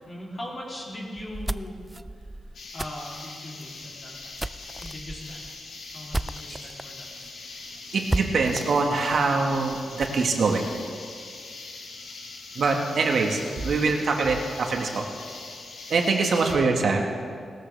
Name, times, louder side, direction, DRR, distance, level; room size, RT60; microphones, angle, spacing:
voice 1, 0.0-1.8 2.7-4.1 4.8-5.4 5.9-7.0 12.7-12.9 13.4-13.9 14.2-14.3 16.2-16.4, left 1 dB, 40° left, -5 dB, 3.1 m, -39 dB
Shovel dirt, 1.2-6.8 7.2-7.3 7.6-7.7 8.1-10.2, right 1 dB, 10° right, 0.3 m, -34 dB
sound 1, 2.5-16.5, left 3 dB, 80° left, 1.7 m, -42 dB
voice 2, 7.9-10.8 12.6-15.1 15.9-17.1, right 4 dB, 65° right, 2 dB, 1.6 m, -24 dB
18.0 x 13.0 x 3.4 m, 2.2 s
wide cardioid pair, 110°, 0 cm